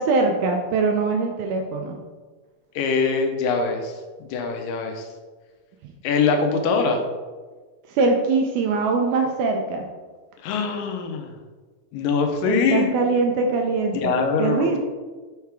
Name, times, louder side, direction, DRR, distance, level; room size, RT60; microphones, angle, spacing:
voice 1, 0.0-2.0 7.9-9.9 12.4-14.1 14.4-14.8, right 3 dB, 80° right, 3 dB, 1.8 m, -22 dB
voice 2, 2.8-3.9 4.2-5.1 6.0-7.0 10.4-11.3 11.9-13.0 13.9-14.8, left 5 dB, 80° left, 4 dB, 2.2 m, -23 dB
6.5 x 3.4 x 4.5 m, 1.4 s
omnidirectional pair, 3.9 m